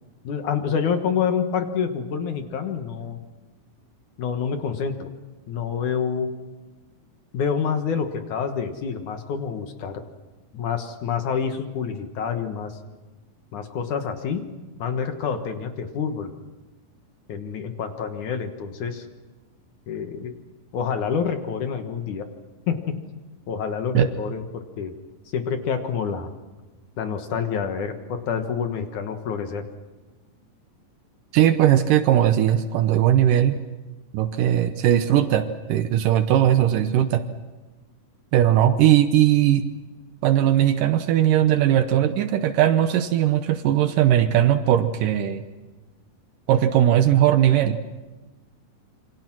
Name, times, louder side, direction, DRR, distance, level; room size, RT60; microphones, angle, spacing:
voice 1, 0.2-3.2 4.2-5.1 5.5-6.3 7.3-10.0 10.5-12.8 13.5-14.4 14.8-16.3 17.3-19.1 19.9-20.3 20.7-22.3 22.7-23.0 23.5-24.9 25.3-26.3 27.0-29.6, left 6 dB, 60° left, 6 dB, 2.6 m, -27 dB
voice 2, 31.3-33.6 34.1-37.2 38.3-39.7 40.2-45.4 46.5-47.8, right 11 dB, 70° right, 10 dB, 2.2 m, -19 dB
27.5 x 24.5 x 6.1 m, 1.2 s
omnidirectional pair, 4.4 m